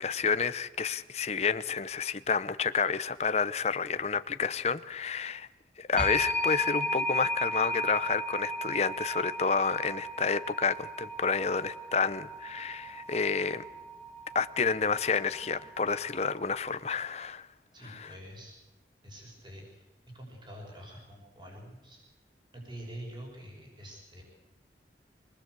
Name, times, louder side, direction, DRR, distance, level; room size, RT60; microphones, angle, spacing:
voice 1, 0.0-5.5 5.8-13.6 14.3-17.5 17.8-18.1, left 5 dB, 35° left, 13 dB, 0.8 m, -30 dB
sound 1, 6.0-16.6, left 1 dB, 5° left, 1.7 m, -36 dB
voice 2, 17.7-18.6 19.0-22.0 22.5-24.2, right 1 dB, 25° right, 0 dB, 6.3 m, -46 dB
25.0 x 20.0 x 8.2 m, 1.0 s
head